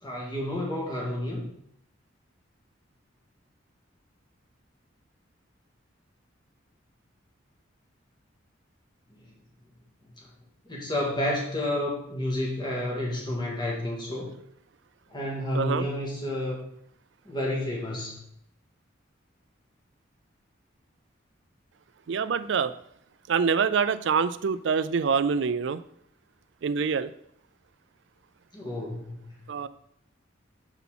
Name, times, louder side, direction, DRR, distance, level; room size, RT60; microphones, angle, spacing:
voice 1, 0.0-1.5 10.7-14.3 15.1-16.6 17.3-18.2 28.5-29.4, left 1 dB, 20° left, -3 dB, 1.8 m, -30 dB
voice 2, 15.5-15.9 22.1-22.7 23.3-25.8 26.6-27.1 29.5-29.7, right 6 dB, 65° right, 14 dB, 0.4 m, -25 dB
7.1 x 5.8 x 3.7 m, 0.72 s
head